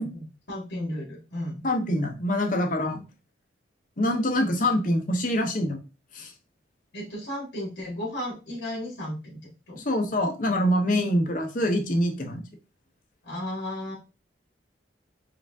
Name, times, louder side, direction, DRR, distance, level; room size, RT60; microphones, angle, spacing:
voice 1, 0.1-1.6 6.9-9.4 9.7-9.8 13.2-13.9, left 1 dB, 70° left, -6 dB, 1.9 m, -34 dB
voice 2, 1.6-3.0 4.0-5.8 6.1-6.3 9.8-12.4, left 1 dB, 45° left, 4 dB, 0.7 m, -25 dB
4.8 x 2.5 x 3.5 m, 0.31 s
head